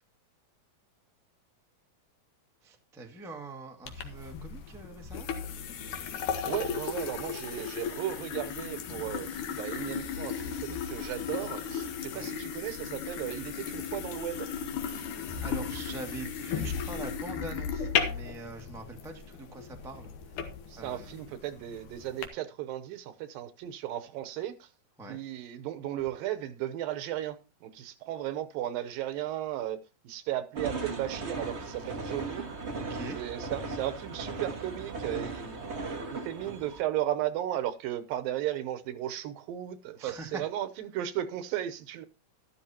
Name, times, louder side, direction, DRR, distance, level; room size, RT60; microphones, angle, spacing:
voice 1, 2.6-5.3 12.1-12.3 14.8-15.1 15.4-20.4 20.8-21.2 25.0-25.2 32.8-33.2 40.0-40.4, right 2 dB, 5° right, 0.5 m, -43 dB
sound 1, 3.9-22.3, left 7 dB, 65° left, 2.7 m, -36 dB
voice 2, 6.4-14.5 20.7-24.7 25.1-29.8 30.0-32.4 33.2-35.6 36.1-42.1, right 12 dB, 80° right, 2.6 m, -35 dB
sound 2, 30.5-36.8, right 3 dB, 60° right, 0.6 m, -37 dB
13.0 x 12.5 x 2.9 m
omnidirectional pair, 4.1 m